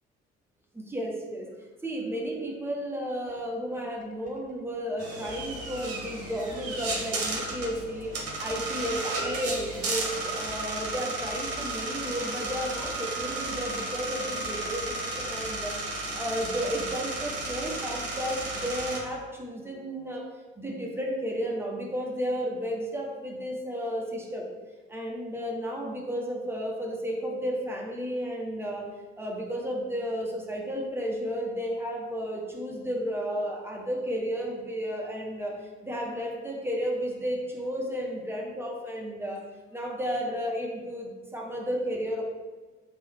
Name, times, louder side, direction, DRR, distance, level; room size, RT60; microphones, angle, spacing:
voice 1, 0.7-1.5 1.8-15.7 16.2-20.3 20.6-24.5 24.9-28.9 29.2-35.5 35.8-39.4 39.7-42.2, equal, 5° right, -1 dB, 1.0 m, -33 dB
sound 1, 3.3-3.4 3.8-19.0, left 4 dB, 25° left, 0.6 m, -49 dB
sound 2, 5.0-19.0, right 2 dB, 45° right, 1.1 m, -34 dB
3.8 x 3.0 x 4.6 m, 1.3 s
figure-of-eight pair, 45°, 34 cm